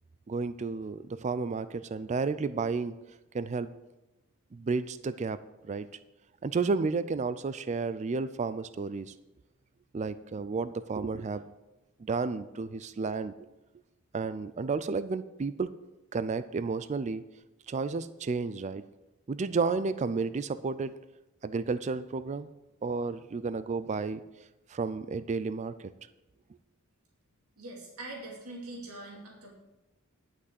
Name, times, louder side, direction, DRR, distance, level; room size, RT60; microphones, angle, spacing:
voice 1, 0.3-3.0 3.3-3.7 4.5-5.9 6.4-9.1 9.9-11.4 12.0-13.3 14.1-15.7 16.1-17.2 17.7-18.8 19.3-20.9 21.4-22.5 22.8-24.2 24.7-25.9, right 4 dB, 30° right, 14 dB, 0.4 m, -32 dB
voice 2, 27.6-29.5, right 2 dB, 80° right, -1 dB, 2.6 m, -43 dB
11.0 x 6.0 x 8.1 m, 1.0 s
head